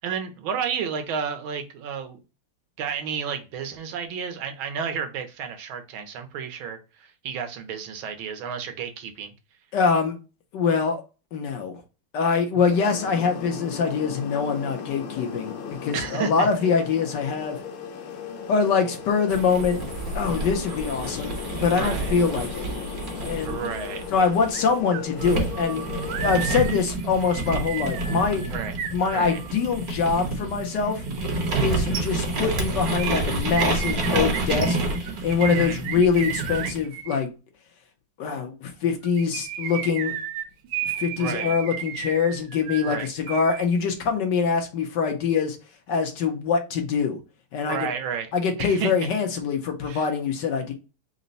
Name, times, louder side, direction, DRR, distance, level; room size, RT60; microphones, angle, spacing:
voice 1, 0.0-2.2 2.8-9.3 12.5-12.6 15.9-16.5 21.7-22.2 23.5-24.0 28.5-28.7 29.1-29.4 31.6-31.8 35.5-35.8 41.2-41.5 42.8-43.1 47.7-48.3 48.6-48.9 49.8-50.0, right 6 dB, 70° right, 1.5 m, -31 dB
voice 2, 9.7-10.2 10.5-11.0 11.3-11.7 12.1-17.6 18.5-19.8 20.1-22.7 23.2-23.6 24.1-28.4 28.9-31.0 31.6-34.8 35.2-37.3 38.2-40.1 41.0-45.6 45.9-47.2 47.5-47.9 48.3-50.7, left 5 dB, 65° left, 1.2 m, -24 dB
sound 1, 12.7-26.6, left 7 dB, 80° left, 1.6 m, -37 dB
sound 2, 19.3-24.7 25.2-36.8, right 2 dB, 50° right, 1.3 m, -29 dB
sound 3, 24.5-24.6 24.9-29.7 33.0-37.2 39.0-43.7 43.9-44.0, right 10 dB, 90° right, 1.6 m, -33 dB
4.0 x 2.1 x 3.8 m
omnidirectional pair, 2.4 m